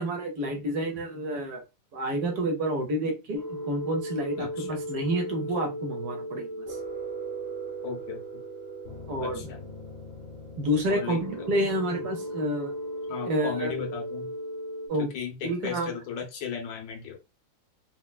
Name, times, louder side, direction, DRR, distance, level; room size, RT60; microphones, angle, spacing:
voice 1, 0.0-1.6 1.9-6.5 9.1-9.4 10.6-12.7 13.2-13.7 14.9-15.1 15.4-15.9, right 1 dB, 65° right, 3 dB, 1.3 m, -29 dB
sound 1, 3.3-14.9, right 1 dB, 50° left, 1.8 m, -37 dB
voice 2, 4.4-4.7 7.8-8.2 9.2-9.7 10.9-11.5 13.1-14.3 15.1-17.2, left 7 dB, 85° left, 2 dB, 1.6 m, -36 dB
4.3 x 2.2 x 2.2 m, 0.26 s
omnidirectional pair, 1.9 m